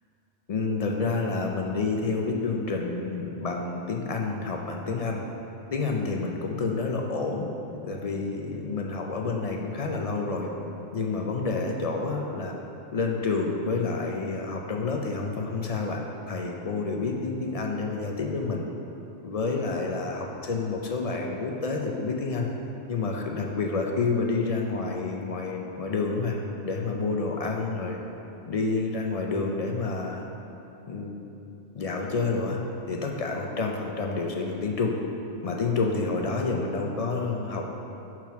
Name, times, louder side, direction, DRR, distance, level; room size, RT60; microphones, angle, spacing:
voice 1, 0.5-5.2 5.7-7.5 7.8-10.5 10.9-12.5 12.9-16.0 16.3-18.6 19.2-22.5 22.9-26.4 26.6-28.0 28.5-30.2 30.9-31.2 31.7-32.6 32.9-35.0 35.4-37.6, left 3 dB, 55° left, 1 dB, 0.4 m, -29 dB
5.7 x 4.5 x 5.8 m, 2.9 s
omnidirectional pair, 1.3 m